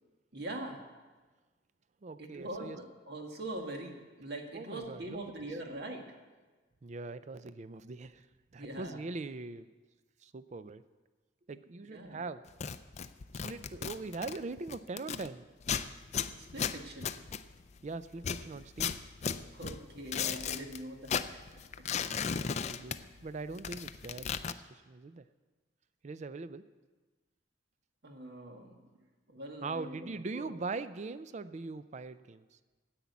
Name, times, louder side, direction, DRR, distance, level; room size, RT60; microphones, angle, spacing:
voice 1, 0.3-0.8 2.2-6.1 8.6-9.0 11.9-12.2 16.3-17.2 19.5-21.9 28.0-28.7 29.3-30.6, right 1 dB, 60° right, 2 dB, 1.8 m, -43 dB
voice 2, 2.0-2.8 4.5-5.4 6.8-8.3 8.5-9.7 10.2-10.8 11.5-12.4 13.4-15.5 17.8-19.0 22.4-25.2 26.0-26.6 29.6-32.4, right 3 dB, 40° right, 13 dB, 0.4 m, -41 dB
sound 1, 12.5-15.3 15.6-17.8 18.2-20.8 21.0-23.3 23.5-24.5, left 7 dB, 35° left, 0.4 m, -36 dB
10.0 x 8.6 x 8.2 m, 1.3 s
head